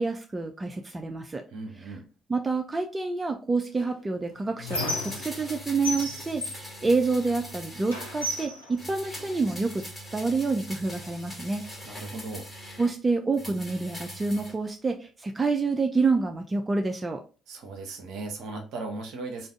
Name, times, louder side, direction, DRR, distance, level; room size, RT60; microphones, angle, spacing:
voice 1, 0.0-1.4 2.3-9.8 10.1-11.6 12.8-17.2, right 3 dB, 25° right, 4 dB, 0.4 m, -28 dB
voice 2, 1.5-2.1 11.8-12.5 17.5-19.5, right 3 dB, 60° right, 4 dB, 0.7 m, -37 dB
Squeak, 3.8-5.6 5.8-7.5 7.9-9.6 10.4-10.5 10.8-11.9, left 2 dB, 90° left, 0.6 m, -35 dB
sound 1, 4.7-8.5 8.8-12.9 13.3-14.6 14.9-15.0, equal, 20° left, 1.4 m, -42 dB
2.5 x 2.4 x 3.5 m, 0.35 s
figure-of-eight pair, 50°, 0 cm